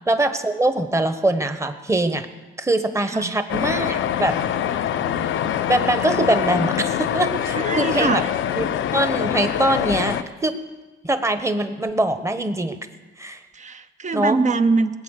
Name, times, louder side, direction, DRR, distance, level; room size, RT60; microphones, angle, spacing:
voice 1, 0.1-2.3 2.6-4.4 5.7-8.2 8.6-10.2 10.4-10.5 11.0-12.8 13.2-13.4 14.1-14.4, right 1 dB, 15° right, 9 dB, 1.2 m, -22 dB
sound 1, 3.5-10.2, left 10 dB, 75° left, 0.7 m, -24 dB
voice 2, 7.5-8.2 13.5-14.9, right 4 dB, 35° right, 10 dB, 0.9 m, -22 dB
20.5 x 8.6 x 6.6 m, 1.3 s
cardioid pair, 90°, 20 cm